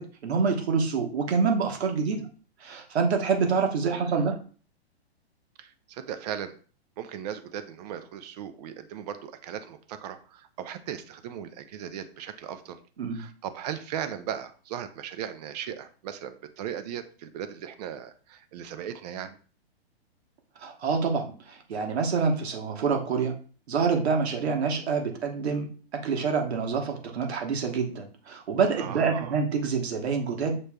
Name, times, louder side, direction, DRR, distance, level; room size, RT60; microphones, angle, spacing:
voice 1, 0.0-2.2 2.6-4.4 13.0-13.2 20.6-23.4 23.7-30.6, right 5 dB, 80° right, 3 dB, 1.2 m, -27 dB
voice 2, 3.8-4.3 5.6-6.5 7.0-12.8 13.1-19.4 28.8-29.4, right 9 dB, 40° right, 10 dB, 0.5 m, -37 dB
6.7 x 3.1 x 2.2 m, 0.40 s
hypercardioid pair, 140°, 32 cm